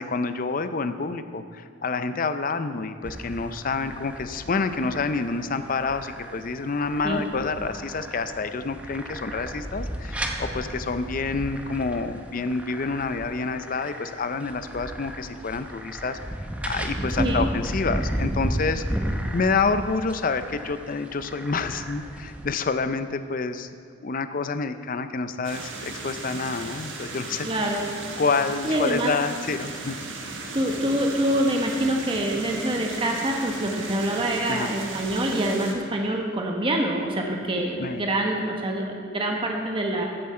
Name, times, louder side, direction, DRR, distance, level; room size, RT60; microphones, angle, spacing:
voice 1, 0.0-16.2 16.6-23.7 24.0-27.5 28.2-30.0 34.5-34.7 37.8-38.0, left 4 dB, 45° left, 10 dB, 0.5 m, -28 dB
sound 1, 3.0-22.5, equal, 5° right, 0.8 m, -34 dB
sound 2, 25.4-35.7, right 3 dB, 70° right, 1.5 m, -36 dB
voice 2, 27.4-27.9 28.6-29.1 30.5-40.1, right 1 dB, 25° right, 1 dB, 1.1 m, -25 dB
15.0 x 7.4 x 4.4 m, 2.4 s
head